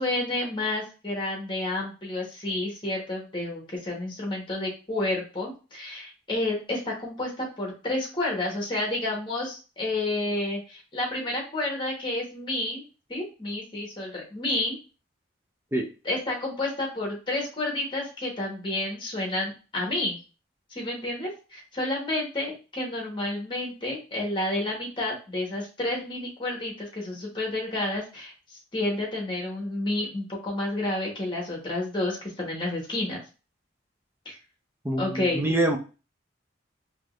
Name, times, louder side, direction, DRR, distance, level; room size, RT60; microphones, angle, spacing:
voice 1, 0.0-12.8 13.1-14.8 16.0-20.2 20.7-33.2 34.2-34.4 35.0-35.5, left 2 dB, 25° left, -1 dB, 1.3 m, -30 dB
voice 2, 34.8-35.8, right 1 dB, 10° right, 3 dB, 0.5 m, -25 dB
3.7 x 3.0 x 2.5 m, 0.32 s
head